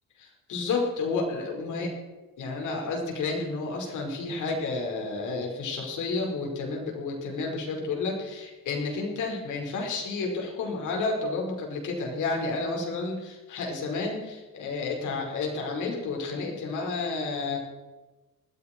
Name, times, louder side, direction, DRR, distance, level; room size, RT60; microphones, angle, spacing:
voice 1, 0.2-1.9 2.4-17.6, left 3 dB, 65° left, 1 dB, 5.3 m, -31 dB
20.0 x 15.0 x 4.7 m, 1.2 s
cardioid pair, 165°, 33 cm